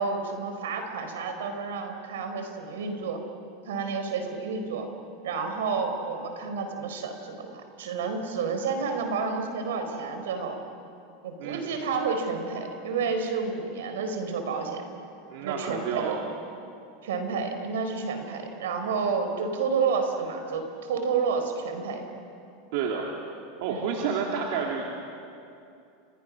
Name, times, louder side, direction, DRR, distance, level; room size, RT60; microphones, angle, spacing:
voice 1, 0.0-3.2 3.7-4.9 5.2-10.6 11.2-14.9 15.4-16.2 17.0-22.1 23.7-23.8, right 5 dB, 85° right, 6 dB, 4.4 m, -30 dB
voice 2, 15.3-16.2 22.7-23.1 23.6-24.9, right 6 dB, 70° right, -1 dB, 3.2 m, -29 dB
29.5 x 27.5 x 6.4 m, 2.6 s
supercardioid pair, 115°, 0 cm